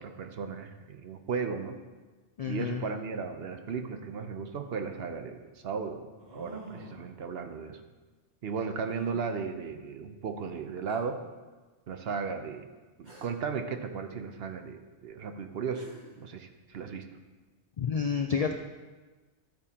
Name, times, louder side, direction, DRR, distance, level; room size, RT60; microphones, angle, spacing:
voice 1, 0.0-1.8 2.4-7.8 8.4-11.2 11.9-12.7 13.0-15.9 16.2-17.1, right 5 dB, 65° right, 6 dB, 0.9 m, -35 dB
voice 2, 2.4-2.8 17.8-18.5, left 6 dB, 60° left, 5 dB, 0.4 m, -29 dB
sound 1, 4.7-4.8 6.2-7.1 8.8-9.2 10.2-10.3 10.9-11.0 13.0-13.4 15.4-15.5 15.7-16.2, right 3 dB, 40° right, 2.2 m, -47 dB
12.0 x 8.6 x 2.9 m, 1.3 s
omnidirectional pair, 1.2 m